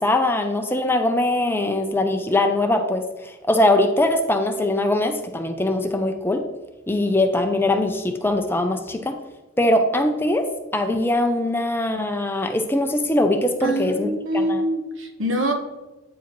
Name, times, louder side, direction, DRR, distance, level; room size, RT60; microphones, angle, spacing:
voice 1, 0.0-6.4 6.9-9.2 9.6-10.5 10.7-14.6, left 1 dB, 10° left, 5 dB, 0.4 m, -21 dB
voice 2, 13.6-15.5, right 1 dB, 65° right, 4 dB, 1.1 m, -24 dB
9.1 x 4.8 x 3.0 m, 1.1 s
head